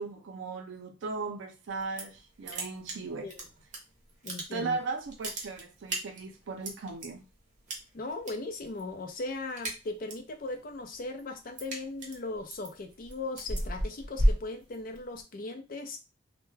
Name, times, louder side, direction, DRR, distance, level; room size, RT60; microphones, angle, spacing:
voice 1, 0.0-3.3 4.5-7.2, right 4 dB, 75° right, 0.4 m, -37 dB
sound 1, 1.7-2.2 2.4-3.8 4.1-4.8 5.1-7.1 7.7-8.3 8.6-8.9 9.2-10.3 10.7-15.2, right 1 dB, 40° right, 0.7 m, -33 dB
voice 2, 4.2-4.8 7.9-16.0, left 2 dB, 45° left, 0.5 m, -38 dB
2.2 x 2.1 x 3.1 m
head